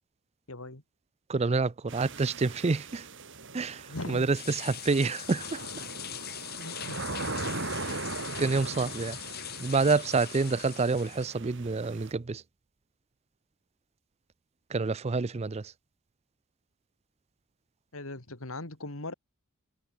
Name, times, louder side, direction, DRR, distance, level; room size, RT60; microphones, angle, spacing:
voice 1, 0.5-0.8 3.9-4.3 6.6-7.0 17.9-19.1, left 2 dB, 70° left, 3.1 m, -39 dB
voice 2, 1.3-3.1 3.5-5.7 7.8-8.0 8.4-9.2 9.6-12.4 14.7-15.7, right 4 dB, 30° right, 0.5 m, -28 dB
sound 1, 1.9-12.1, right 3 dB, 60° right, 5.9 m, -40 dB
sound 2, 4.3-11.3, left 12 dB, 45° left, 2.0 m, -42 dB
head